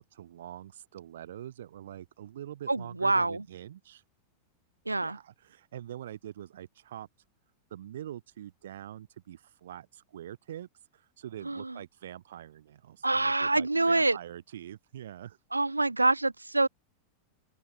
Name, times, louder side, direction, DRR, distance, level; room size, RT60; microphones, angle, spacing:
voice 1, 0.0-4.0 5.0-7.1 7.7-15.4, right 11 dB, 60° right, 1.8 m, -44 dB
voice 2, 2.7-3.4 4.9-5.2 11.4-11.8 13.0-14.2 15.5-16.7, right 2 dB, 85° right, 2.3 m, -26 dB
open air
figure-of-eight pair, 90°, 0 cm